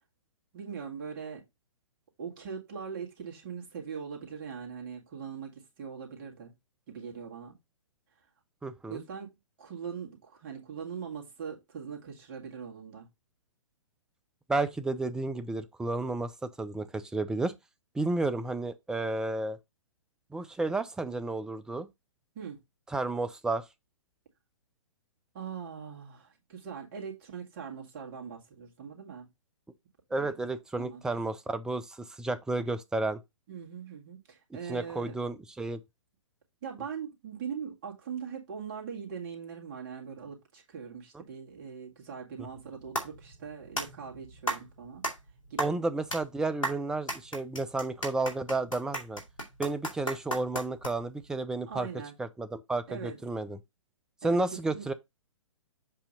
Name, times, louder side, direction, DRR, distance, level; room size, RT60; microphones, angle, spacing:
voice 1, 0.5-1.4 2.2-6.5 6.9-7.6 8.9-13.1 22.4-22.6 25.3-29.3 30.1-30.5 30.8-31.2 33.5-35.2 36.6-45.0 45.5-45.8 51.7-52.1 52.9-53.2 54.2-54.4 54.7-54.9, right 7 dB, 40° right, 2.0 m, -41 dB
voice 2, 8.6-9.0 14.5-17.5 17.9-19.6 20.3-21.9 22.9-23.6 30.1-33.2 34.7-35.8 41.1-41.2 45.6-49.2 49.6-51.9 52.2-53.6 54.2-54.9, right 2 dB, 5° right, 0.4 m, -32 dB
sound 1, 42.5-51.2, right 1 dB, 85° left, 2.2 m, -37 dB
7.6 x 2.8 x 5.3 m
figure-of-eight pair, 120°, 16 cm